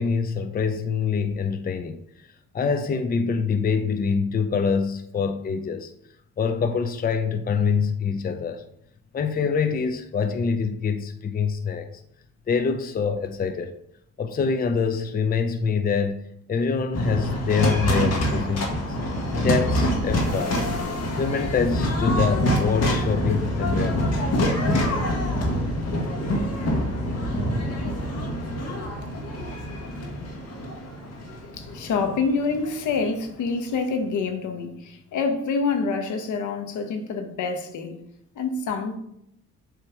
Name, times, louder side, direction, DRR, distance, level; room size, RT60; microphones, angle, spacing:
voice 1, 0.0-2.0 2.5-5.9 6.4-8.6 9.1-11.9 12.5-13.8 14.2-19.0 19.4-20.6 21.1-24.2 29.9-30.4, left 5 dB, 30° left, 0.6 m, -25 dB
sound 1, 16.9-33.2, equal, 60° left, 1.6 m, -26 dB
voice 2, 31.5-38.0 38.3-39.0, left 4 dB, 75° left, 1.1 m, -27 dB
7.5 x 3.3 x 4.7 m
cardioid pair, 90°, 30 cm